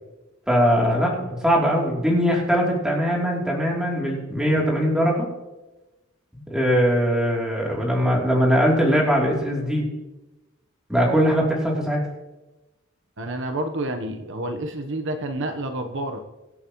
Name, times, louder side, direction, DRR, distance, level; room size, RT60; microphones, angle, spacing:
voice 1, 0.5-5.3 6.5-9.9 10.9-12.0, equal, 5° right, -3 dB, 3.1 m, -21 dB
voice 2, 13.2-16.2, right 1 dB, 65° right, 5 dB, 1.0 m, -29 dB
24.0 x 8.7 x 3.1 m, 1.1 s
head